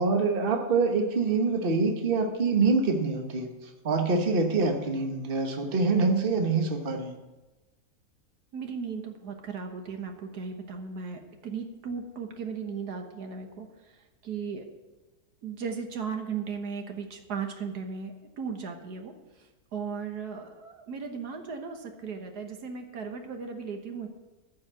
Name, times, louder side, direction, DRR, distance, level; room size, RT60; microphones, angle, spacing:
voice 1, 0.0-7.2, right 4 dB, 40° right, 3 dB, 1.3 m, -25 dB
voice 2, 8.5-13.7 14.2-14.6 15.4-19.1 19.7-24.1, right 5 dB, 80° right, 4 dB, 1.7 m, -36 dB
14.0 x 4.8 x 7.4 m, 1.1 s
omnidirectional pair, 1.7 m